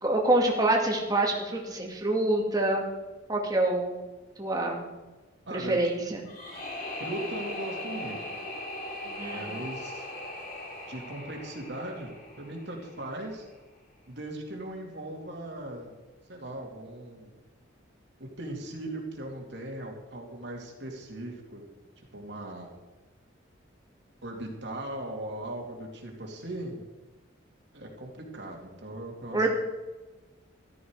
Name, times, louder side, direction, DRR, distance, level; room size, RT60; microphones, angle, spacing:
voice 1, 0.0-2.9 3.3-3.9 4.4-4.8 5.5-6.2 9.2-9.5 29.3-29.5, right 2 dB, 20° right, 0 dB, 2.2 m, -26 dB
voice 2, 5.5-5.8 7.0-8.2 9.0-10.1 10.9-12.1 12.4-13.4 14.1-16.0 16.3-17.3 18.4-21.7 22.1-22.7 24.2-26.8 27.7-29.5, right 1 dB, 60° right, 0 dB, 2.7 m, -38 dB
sound 1, 6.3-13.2, left 1 dB, 45° left, 4.6 m, -39 dB
14.0 x 13.5 x 4.8 m, 1.2 s
head